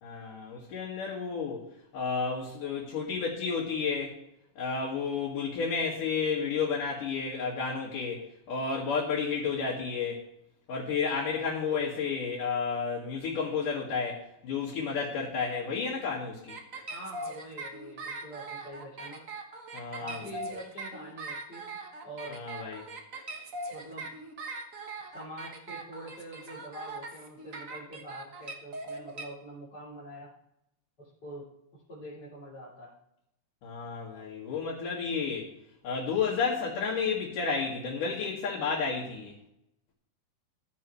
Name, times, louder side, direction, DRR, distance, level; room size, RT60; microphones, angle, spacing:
voice 1, 0.0-1.7 1.9-4.1 4.6-10.2 10.7-16.5 19.7-20.2 22.3-22.9 33.6-35.5 35.8-39.4, left 5 dB, 80° left, -6 dB, 3.7 m, -31 dB
sound 1, 16.5-29.2, right 2 dB, 90° right, 0.7 m, -40 dB
voice 2, 16.9-19.2 20.0-21.6 22.0-22.4 23.7-24.1 25.0-30.3 31.0-31.4 31.7-32.9, right 1 dB, 30° left, -10 dB, 3.8 m, -45 dB
14.0 x 13.0 x 3.2 m, 0.79 s
omnidirectional pair, 3.7 m